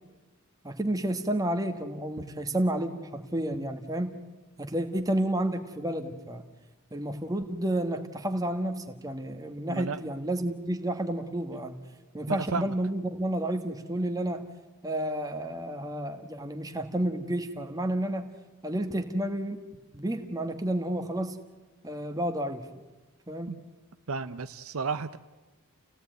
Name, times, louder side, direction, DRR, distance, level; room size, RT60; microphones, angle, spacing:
voice 1, 0.6-4.1 4.6-6.4 6.9-11.8 12.1-14.4 14.8-18.3 18.6-19.6 19.9-21.4 21.8-22.6 23.3-23.5, right 1 dB, 15° right, 6 dB, 1.6 m, -30 dB
voice 2, 9.7-10.0 12.3-12.7 23.5-23.6 24.1-25.2, right 4 dB, 70° right, 11 dB, 0.7 m, -33 dB
29.0 x 17.0 x 9.3 m, 1.2 s
head